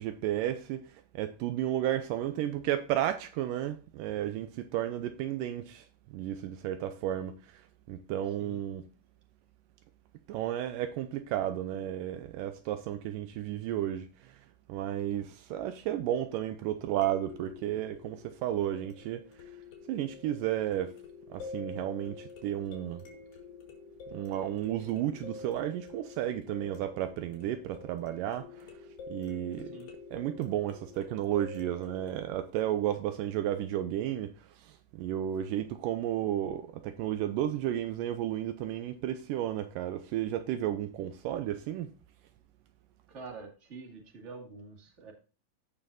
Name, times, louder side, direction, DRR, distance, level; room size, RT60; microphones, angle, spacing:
voice 1, 0.0-8.9 10.3-14.4 14.7-19.2 19.9-20.9 21.3-23.0 24.1-28.8 29.1-29.8 30.1-41.9, right 12 dB, 80° right, 2.2 m, -33 dB
sound 1, 12.3-12.4 17.0-32.1, left 4 dB, 90° left, 3.8 m, -48 dB
voice 2, 43.1-45.1, right 4 dB, 25° right, 1.9 m, -46 dB
15.5 x 5.6 x 2.6 m
omnidirectional pair, 4.0 m